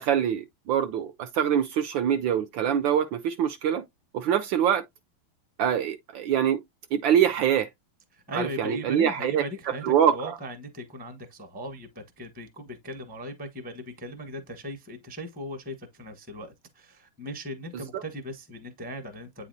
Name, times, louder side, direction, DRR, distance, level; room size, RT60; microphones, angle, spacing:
voice 1, 0.0-3.8 4.1-4.8 5.6-6.6 6.9-7.7 8.3-9.4 9.8-10.3, right 9 dB, 75° right, 1.2 m, -24 dB
voice 2, 8.1-19.5, left 1 dB, 5° right, 0.7 m, -38 dB
8.5 x 4.1 x 2.7 m
omnidirectional pair, 2.4 m